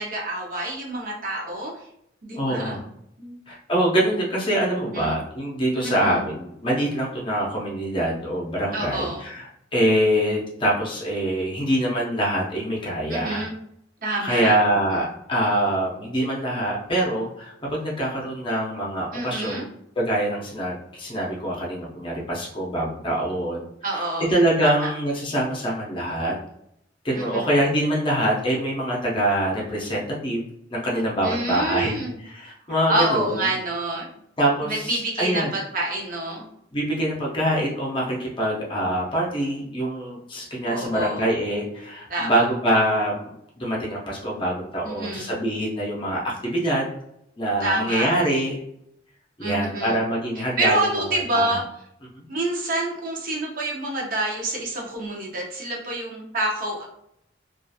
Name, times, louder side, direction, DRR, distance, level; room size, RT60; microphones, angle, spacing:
voice 1, 0.0-1.8 2.2-2.8 3.2-3.4 4.8-5.2 5.8-6.2 8.7-9.2 13.1-13.5 14.0-14.6 14.9-15.0 19.1-19.6 23.8-24.3 24.6-24.9 27.1-27.4 31.2-32.2 32.9-34.1 34.6-36.4 40.7-41.3 42.1-42.4 44.8-45.3 47.6-48.1 49.4-50.0 50.6-51.6 52.3-56.9, right 2 dB, 45° right, -2 dB, 0.6 m, -27 dB
voice 2, 2.3-2.8 3.5-13.4 14.2-19.7 20.0-23.6 23.9-24.0 24.3-26.4 27.0-30.4 30.7-33.4 34.4-35.5 36.7-46.9 47.4-48.6 49.4-51.6 52.1-52.2, right 1 dB, 25° left, -3 dB, 0.6 m, -24 dB
2.7 x 2.4 x 2.3 m, 0.74 s
head